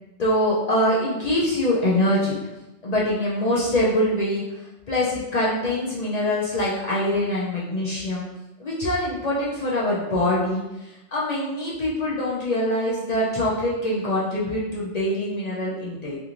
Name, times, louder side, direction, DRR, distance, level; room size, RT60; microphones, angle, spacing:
voice 1, 0.2-2.3 2.8-8.3 8.6-16.2, left 1 dB, 55° left, -6 dB, 0.4 m, -24 dB
2.9 x 2.5 x 2.4 m, 0.96 s
omnidirectional pair, 1.2 m